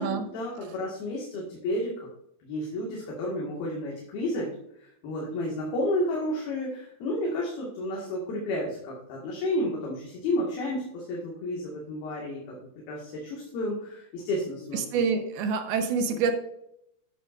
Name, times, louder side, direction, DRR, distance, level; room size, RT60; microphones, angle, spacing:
voice 1, 0.0-2.0 2.4-4.5 4.8-12.6 12.9-15.0, left 1 dB, 70° left, -3 dB, 3.7 m, -31 dB
voice 2, 14.7-16.3, right 5 dB, 80° right, 7 dB, 2.8 m, -26 dB
13.0 x 10.5 x 2.5 m, 0.77 s
omnidirectional pair, 4.6 m